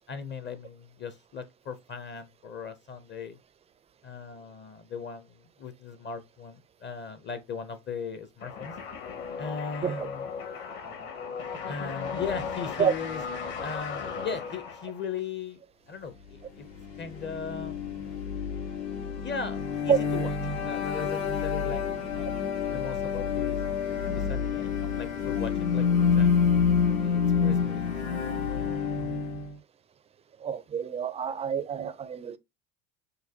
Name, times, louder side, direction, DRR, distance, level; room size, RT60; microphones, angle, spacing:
voice 1, 0.1-3.4 4.0-8.7 9.4-10.3 11.7-13.2 13.6-15.6 15.9-16.7 17.0-17.8 19.2-20.3 20.6-22.3 22.7-23.6 24.1-25.9 26.2-26.4 27.0-27.8, left 5 dB, 30° left, 0.6 m, -38 dB
sound 1, 8.4-15.2, left 6 dB, 65° left, 1.8 m, -36 dB
sound 2, 16.5-29.5, left 6 dB, 85° left, 1.9 m, -28 dB
voice 2, 30.4-32.4, right 8 dB, 15° right, 0.4 m, -27 dB
6.4 x 2.3 x 2.7 m
supercardioid pair, 95°, 39 cm